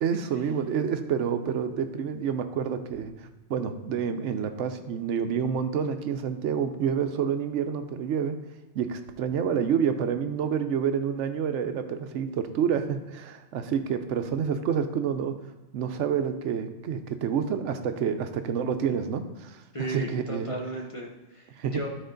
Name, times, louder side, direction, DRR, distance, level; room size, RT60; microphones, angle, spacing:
voice 1, 0.0-3.1 3.5-8.4 8.7-15.4 15.7-20.5 21.5-21.9, right 7 dB, 80° right, 8 dB, 1.0 m, -28 dB
voice 2, 19.7-21.9, right 1 dB, 30° left, 0 dB, 0.9 m, -35 dB
12.5 x 4.3 x 3.8 m, 1.0 s
omnidirectional pair, 1.2 m